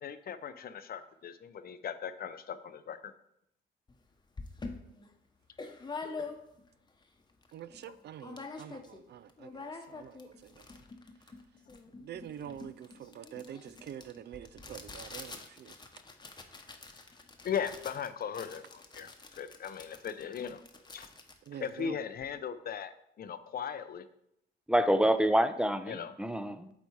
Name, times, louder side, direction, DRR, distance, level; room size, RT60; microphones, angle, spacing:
voice 1, 0.0-3.1 7.9-8.0 17.4-20.6 20.9-21.1 21.5-24.0 25.9-26.1, left 7 dB, 50° left, 12 dB, 0.6 m, -38 dB
sound 1, 3.9-4.0 4.4-6.7 7.2-7.3 7.4-7.9 8.2-9.0 9.3-22.4, left 4 dB, 20° left, 0.9 m, -46 dB
voice 2, 7.5-10.2 12.0-15.7 21.5-22.0, right 10 dB, 60° right, 15 dB, 0.4 m, -46 dB
voice 3, 24.7-26.7, right 1 dB, 5° right, 11 dB, 0.5 m, -27 dB
8.1 x 4.2 x 4.7 m, 0.78 s
cardioid pair, 90°, 20 cm